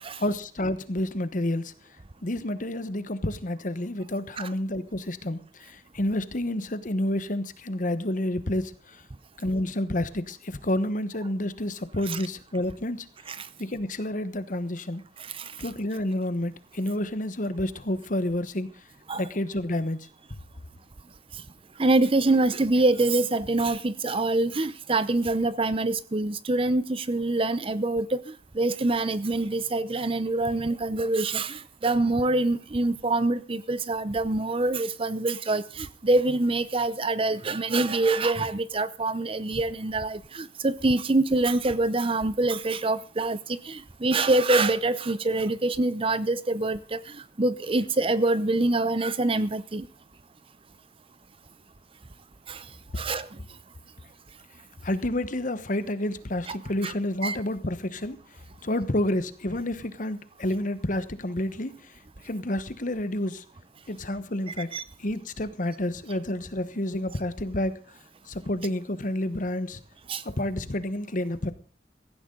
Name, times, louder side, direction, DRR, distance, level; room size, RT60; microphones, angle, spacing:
voice 1, 0.2-1.7 2.2-9.0 9.4-13.1 13.6-15.0 15.6-18.7 19.2-20.1 54.8-58.2 58.6-61.8 62.2-63.4 63.9-64.7 65.0-67.8 68.3-69.8 70.2-71.5, left 1 dB, 50° left, 1.2 m, -29 dB
voice 2, 15.2-15.5 19.1-19.2 21.8-49.9 52.5-52.6 53.0-53.4 56.5-56.6 56.8-56.9 57.2-57.4 64.5-64.8 70.1-70.2, right 2 dB, 30° right, 0.7 m, -25 dB
16.5 x 15.5 x 3.9 m
head